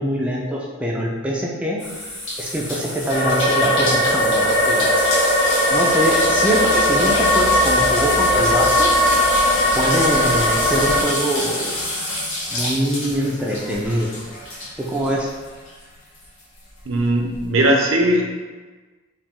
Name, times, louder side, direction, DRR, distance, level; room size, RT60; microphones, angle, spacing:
voice 1, 0.0-1.8 2.4-5.0 5.7-8.9 9.7-11.7 12.5-14.1 14.8-15.3, equal, 5° right, -3 dB, 0.4 m, -23 dB
sound 1, 1.8-15.8 16.1-17.4, left 1 dB, 65° left, 1.3 m, -28 dB
sound 2, 3.1-11.0, left 1 dB, 30° left, 1.3 m, -18 dB
voice 2, 16.9-18.4, right 1 dB, 75° right, 2 dB, 0.6 m, -18 dB
4.8 x 2.0 x 3.6 m, 1.3 s
head